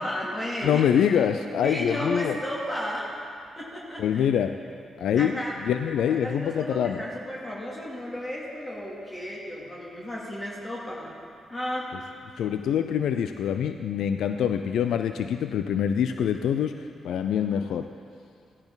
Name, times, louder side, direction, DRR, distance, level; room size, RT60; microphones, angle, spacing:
voice 1, 0.0-0.9 1.6-3.1 3.6-4.3 5.2-5.6 6.1-11.1 11.5-11.9, left 1 dB, 30° left, -5 dB, 2.7 m, -33 dB
voice 2, 0.6-2.4 4.0-4.6 5.0-7.0 12.4-17.9, left 8 dB, 75° left, 8 dB, 0.4 m, -25 dB
16.0 x 10.5 x 4.0 m, 2.4 s
supercardioid pair, 45°, 0 cm